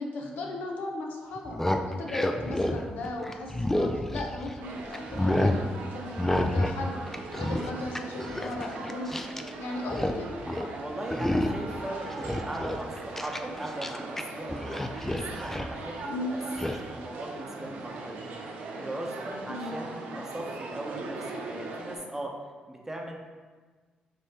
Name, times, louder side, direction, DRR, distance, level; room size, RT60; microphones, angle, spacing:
voice 1, 0.0-7.0 7.4-10.3 16.0-16.4 19.5-19.8, left 2 dB, 80° left, 1 dB, 0.6 m, -37 dB
sound 1, 1.4-4.6 4.9-5.6 6.2-6.8 7.1-9.5 9.8-10.2 10.5-10.7 11.1-11.7 12.1-14.2 14.5-15.7 16.6-16.8, left 1 dB, 10° left, 0.3 m, -29 dB
sound 2, 4.6-22.0, right 3 dB, 85° right, 0.5 m, -40 dB
voice 2, 10.8-16.4 16.7-18.4 18.8-22.3 22.7-23.1, right 1 dB, 15° right, 0 dB, 0.8 m, -39 dB
5.2 x 3.0 x 2.8 m, 1.4 s
cardioid pair, 65°, 3 cm